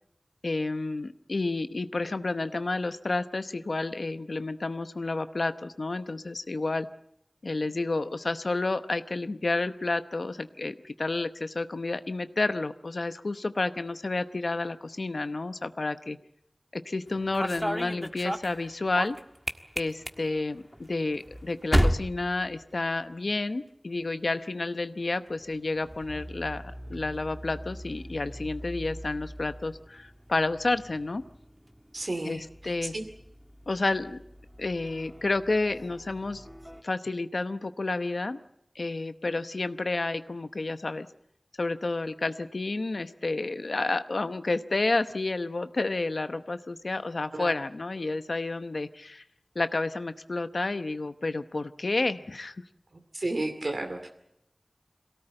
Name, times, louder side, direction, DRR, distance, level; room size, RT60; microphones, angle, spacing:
voice 1, 0.4-6.9 7.4-16.2 16.7-19.2 19.8-26.6 26.9-31.2 32.2-32.9 33.7-34.2 34.6-36.4 36.8-38.4 38.7-41.1 41.6-49.2 49.5-52.6, left 3 dB, 85° left, 10 dB, 0.9 m, -30 dB
sound 1, 17.1-23.3 23.5-24.1 25.1-36.8, equal, 5° right, 1.6 m, -35 dB
voice 2, 31.9-32.4 32.8-33.0 47.3-47.5 53.1-54.1, right 2 dB, 75° right, 4 dB, 2.4 m, -32 dB
23.0 x 17.5 x 8.9 m, 0.79 s
wide cardioid pair, 55°, 0 cm